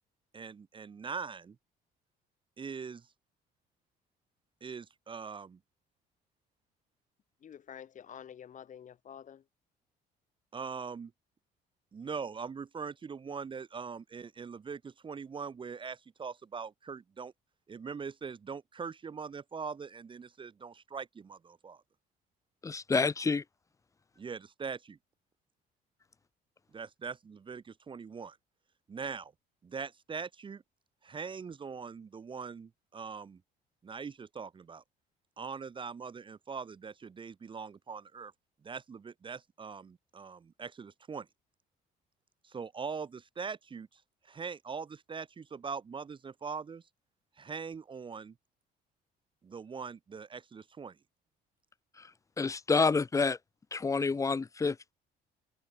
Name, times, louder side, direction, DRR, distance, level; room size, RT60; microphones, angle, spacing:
voice 1, 0.3-1.6 2.6-3.0 4.6-5.6 10.5-11.1 11.9-17.3 17.7-21.8 24.2-25.0 26.7-28.4 28.9-29.3 29.6-30.6 31.0-33.4 33.8-34.8 35.4-38.3 38.6-41.3 42.4-44.0 44.2-46.8 47.4-48.3 49.4-50.9, right 5 dB, 30° right, 1.1 m, -42 dB
voice 2, 7.4-9.5, left 8 dB, 50° left, 6.4 m, -49 dB
voice 3, 22.6-23.4 52.0-52.1 52.4-53.4 53.7-54.9, left 4 dB, 20° left, 0.6 m, -28 dB
cardioid pair, 110°, 17 cm